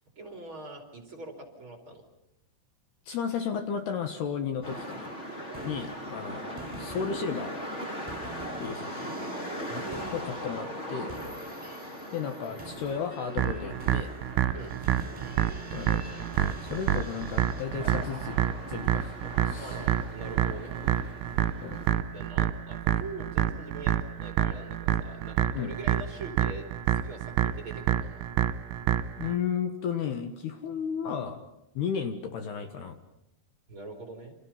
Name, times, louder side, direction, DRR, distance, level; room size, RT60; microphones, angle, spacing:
voice 1, 0.1-2.0 5.5-5.8 9.7-10.3 14.5-14.7 19.6-20.7 22.1-28.3 33.7-34.3, right 3 dB, 30° right, 3 dB, 3.3 m, -43 dB
voice 2, 3.1-5.1 5.6-6.5 6.8-7.5 8.6-9.1 10.1-11.2 12.1-14.1 15.7-16.2 16.6-18.4 18.7-19.2 19.4-19.9 21.6-21.9 25.5-25.7 29.2-31.4 31.8-33.0, left 7 dB, 65° left, 7 dB, 3.0 m, -33 dB
sound 1, 4.6-22.0, equal, 20° left, 1.9 m, -40 dB
sound 2, 4.6-5.0 5.4-6.3 6.6-17.6, right 3 dB, 10° right, 6.6 m, -47 dB
sound 3, 13.4-29.4, right 10 dB, 80° right, 3.3 m, -28 dB
29.0 x 27.0 x 5.7 m, 0.86 s
omnidirectional pair, 5.7 m